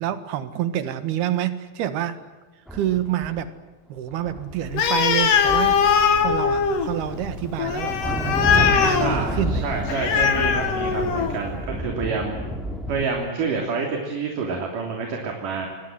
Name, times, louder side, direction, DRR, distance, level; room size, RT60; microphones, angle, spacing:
voice 1, 0.0-2.2 2.7-3.5 3.9-5.9 6.2-9.8, right 11 dB, 90° right, 11 dB, 3.6 m, -27 dB
sound 1, 2.7-3.4 4.1-5.2 5.5-13.1, equal, ahead, 2.8 m, -31 dB
Animal, 4.7-11.5, left 7 dB, 60° left, 3.4 m, -21 dB
voice 2, 9.0-12.4 12.9-15.7, right 4 dB, 60° right, 2 dB, 4.6 m, -28 dB
27.0 x 23.0 x 7.7 m, 1.3 s
omnidirectional pair, 4.4 m